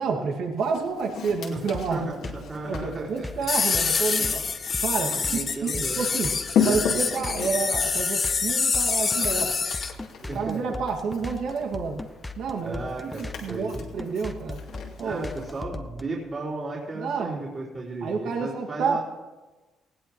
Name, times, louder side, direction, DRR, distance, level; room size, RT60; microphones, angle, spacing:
voice 1, 0.0-2.1 2.7-4.4 4.8-6.3 6.6-9.6 10.3-12.0 12.4-14.6 15.0-15.3 16.9-17.4 18.0-19.0, right 5 dB, 75° right, 1 dB, 1.9 m, -29 dB
Walk footsteps, 0.6-15.6, left 7 dB, 85° left, 2.7 m, -35 dB
sound 1, 1.7-16.0, left 2 dB, 15° left, 0.9 m, -38 dB
voice 2, 1.9-3.4 4.2-4.4 5.1-6.0 10.2-10.8 12.6-13.9 15.0-19.0, right 2 dB, 35° right, -7 dB, 3.8 m, -35 dB
sound 2, 3.4-9.9, left 5 dB, 40° left, 0.8 m, -26 dB
19.0 x 16.5 x 3.0 m, 1.2 s
cardioid pair, 90°, 0 cm